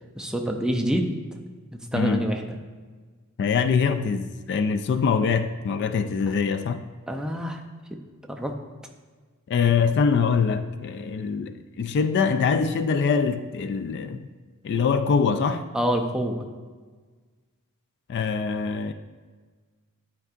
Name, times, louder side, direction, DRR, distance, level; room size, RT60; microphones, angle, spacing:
voice 1, 0.2-1.1 1.7-2.6 7.1-7.6 8.3-8.5 15.7-16.4, equal, 5° right, 2 dB, 0.5 m, -26 dB
voice 2, 3.4-6.8 9.5-14.3 14.6-15.7 18.1-18.9, left 5 dB, 55° left, 10 dB, 0.3 m, -23 dB
10.5 x 4.6 x 2.4 m, 1.4 s
head